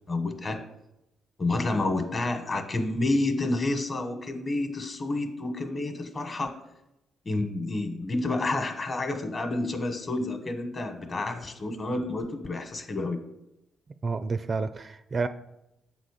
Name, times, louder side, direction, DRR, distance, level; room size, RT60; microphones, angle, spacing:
voice 1, 0.1-0.6 1.4-6.5 7.2-13.2, left 2 dB, 35° left, 1.2 m, -29 dB
voice 2, 14.0-15.3, right 4 dB, 35° right, 0.4 m, -29 dB
7.8 x 4.0 x 6.6 m
cardioid pair, 90°, 0 cm